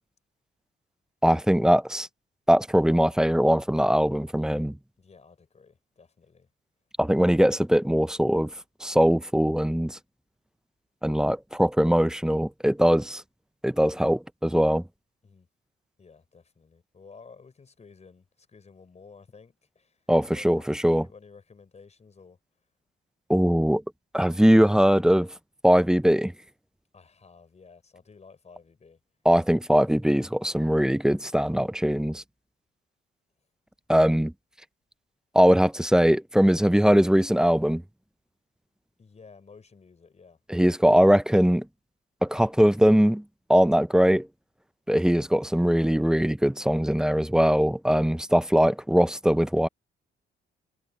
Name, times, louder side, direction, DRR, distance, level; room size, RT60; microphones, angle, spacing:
voice 1, 1.2-2.1 2.5-4.8 7.0-8.5 8.8-10.0 11.0-13.2 13.6-14.8 20.1-21.0 23.3-23.8 24.1-25.3 25.6-26.3 29.2-32.2 33.9-34.3 35.3-37.8 40.5-41.7 42.2-43.2 43.5-44.3 44.9-49.7, equal, 5° right, 0.6 m, -21 dB
voice 2, 5.0-6.5 15.2-15.5 16.0-20.6 21.0-22.4 26.9-29.0 39.0-40.4, left 5 dB, 35° left, 5.6 m, -52 dB
cardioid pair, 90°, 20 cm